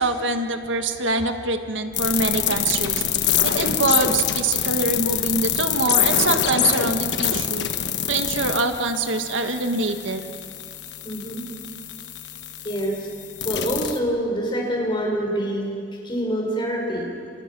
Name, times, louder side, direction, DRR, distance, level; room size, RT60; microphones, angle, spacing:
voice 1, 0.0-3.0 3.4-7.7 8.1-10.3, right 3 dB, 80° right, 6 dB, 1.7 m, -24 dB
sound 1, 1.9-14.0, left 9 dB, 60° left, 1.4 m, -25 dB
voice 2, 11.0-11.4 12.6-13.1 13.4-15.7 16.0-17.1, equal, 25° left, 0 dB, 5.8 m, -26 dB
28.0 x 27.5 x 6.2 m, 2.3 s
head